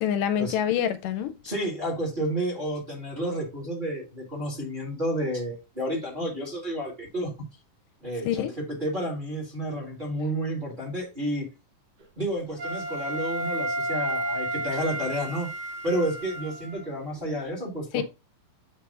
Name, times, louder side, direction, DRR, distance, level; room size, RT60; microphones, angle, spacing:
voice 1, 0.0-1.4 8.3-8.5 17.9-18.0, left 9 dB, 80° left, 2.2 m, -26 dB
voice 2, 1.4-7.3 8.0-8.4 8.8-11.5 12.2-15.5 15.8-18.0, right 1 dB, 20° right, 1.7 m, -30 dB
Wind instrument woodwind instrument, 12.6-16.9, right 1 dB, 60° right, 2.6 m, -32 dB
8.1 x 3.4 x 3.7 m
omnidirectional pair, 3.8 m